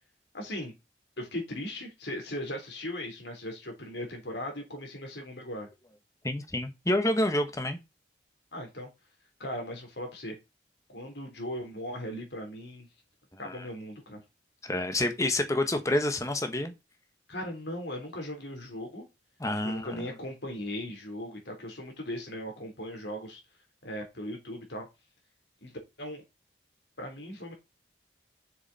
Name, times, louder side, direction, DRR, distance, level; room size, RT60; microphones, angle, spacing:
voice 1, 0.3-0.7 1.2-5.7 8.5-8.9 9.4-10.4 10.9-12.9 13.4-14.2 17.3-19.1 19.6-23.4 23.8-24.9 25.6-26.2 27.0-27.5, left 1 dB, 75° left, 3.6 m, -38 dB
voice 2, 6.2-7.8 13.4-13.6 14.6-16.7 19.4-20.1, left 1 dB, 20° left, 1.2 m, -28 dB
6.8 x 6.8 x 4.2 m
head